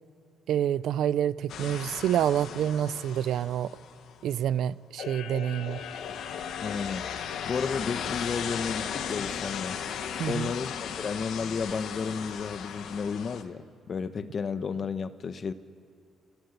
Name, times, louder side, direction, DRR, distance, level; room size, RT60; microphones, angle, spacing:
voice 1, 0.5-3.7 4.2-5.8 10.2-10.5, right 10 dB, 75° right, 0.5 m, -27 dB
sound 1, 1.5-4.1 5.0-13.4, left 8 dB, 75° left, 1.5 m, -36 dB
voice 2, 6.6-7.0 7.4-9.8 10.3-15.5, left 5 dB, 45° left, 1.0 m, -32 dB
28.5 x 15.5 x 8.1 m
cardioid pair, 90°, 0 cm